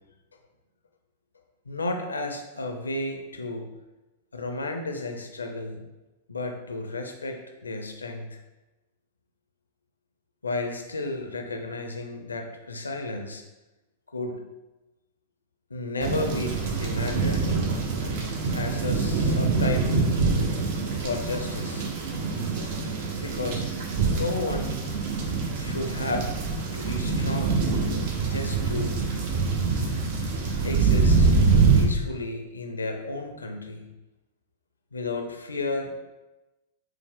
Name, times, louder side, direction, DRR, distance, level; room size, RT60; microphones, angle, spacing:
voice 1, 1.7-3.7 4.3-5.9 6.3-8.4 10.4-13.4 14.1-14.4 15.7-17.6 18.5-20.1 21.0-21.9 23.2-23.7 24.1-24.8 25.6-26.3 26.7-27.7 28.2-29.0 30.6-31.3 31.7-33.9 34.9-35.9, left 2 dB, 80° left, 4 dB, 0.5 m, -32 dB
sound 1, 16.0-31.9, right 4 dB, 50° right, 0.6 m, -25 dB
4.7 x 2.0 x 3.4 m, 1.1 s
figure-of-eight pair, 100°, 0 cm